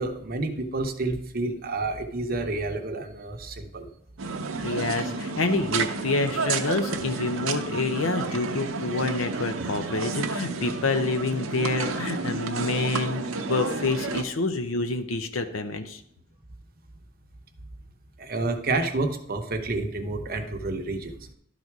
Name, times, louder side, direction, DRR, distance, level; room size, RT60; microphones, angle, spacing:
voice 1, 0.0-3.9 18.2-21.3, right 2 dB, 50° right, 5 dB, 0.9 m, -29 dB
sound 1, 4.2-14.2, right 4 dB, 90° right, 0.7 m, -31 dB
voice 2, 4.6-16.0, left 3 dB, 80° left, 8 dB, 0.7 m, -27 dB
12.0 x 4.1 x 4.7 m, 0.70 s
head